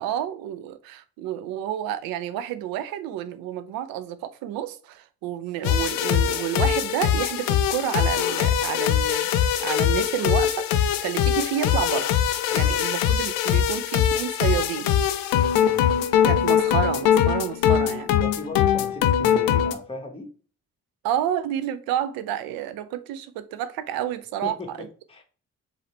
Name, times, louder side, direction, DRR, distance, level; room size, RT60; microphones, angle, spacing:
voice 1, 0.0-9.3 9.6-12.1 12.5-15.4 16.2-18.2 21.0-24.5, right 11 dB, 90° right, 0.5 m, -30 dB
sound 1, 5.6-19.7, left 9 dB, 90° left, 0.5 m, -22 dB
voice 2, 12.5-12.8 15.6-15.8 18.1-20.3 24.4-25.2, left 2 dB, 15° left, 1.2 m, -37 dB
4.0 x 3.9 x 3.2 m
supercardioid pair, 45°, 34 cm